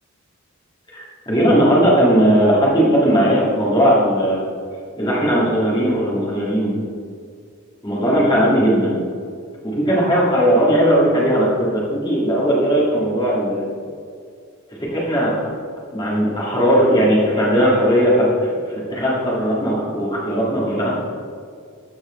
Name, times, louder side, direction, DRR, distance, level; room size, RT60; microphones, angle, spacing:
voice 1, 0.9-4.4 5.0-6.8 7.8-9.0 9.6-13.7 14.8-15.4 15.9-20.9, equal, 20° left, -6 dB, 2.0 m, -17 dB
14.0 x 4.8 x 3.2 m, 2.2 s
head